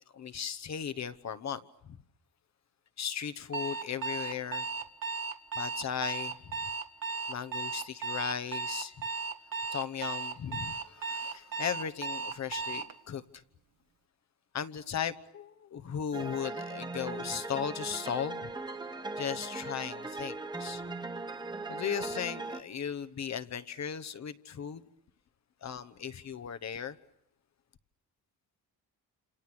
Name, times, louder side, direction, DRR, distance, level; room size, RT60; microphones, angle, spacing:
voice 1, 0.1-2.0 3.0-4.7 5.5-6.7 7.3-9.1 9.7-13.2 14.5-18.5 19.2-20.8 21.7-24.8 25.6-27.0, left 8 dB, 45° left, 1.1 m, -37 dB
Alarm, 3.5-12.9, right 4 dB, 60° right, 1.6 m, -36 dB
sound 1, 16.1-22.6, right 3 dB, 10° right, 1.0 m, -39 dB
29.0 x 28.0 x 6.2 m
wide cardioid pair, 175°, 38 cm